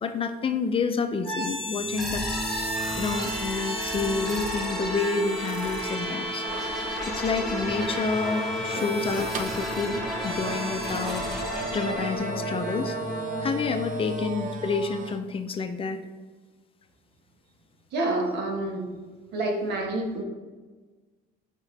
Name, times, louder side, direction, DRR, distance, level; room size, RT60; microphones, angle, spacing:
voice 1, 0.0-2.4 2.9-6.5 7.1-11.3 11.7-13.0 13.4-16.0, left 4 dB, 35° left, 8 dB, 0.5 m, -29 dB
sound 1, 1.2-15.1, equal, ahead, 1.6 m, -31 dB
sound 2, 6.4-15.2, right 6 dB, 50° right, 0.6 m, -38 dB
voice 2, 17.9-18.9 19.3-20.2, right 2 dB, 80° right, 1 dB, 1.3 m, -28 dB
8.7 x 3.7 x 3.3 m, 1.3 s
cardioid pair, 110°, 17 cm